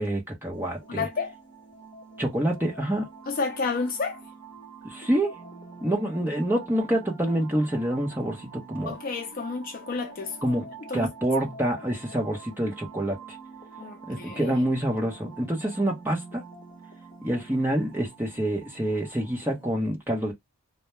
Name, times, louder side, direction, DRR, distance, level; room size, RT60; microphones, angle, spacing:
voice 1, 0.0-1.1 2.2-3.1 4.8-5.4 5.8-9.0 10.4-13.2 14.1-16.4 17.2-20.3, right 1 dB, 10° right, 0.7 m, -27 dB
sound 1, 0.5-19.7, right 4 dB, 20° left, 1.0 m, -46 dB
voice 2, 0.9-1.3 3.3-4.2 8.9-10.4 10.9-11.1 13.8-14.5, left 4 dB, 40° left, 0.4 m, -30 dB
2.2 x 2.1 x 2.9 m
head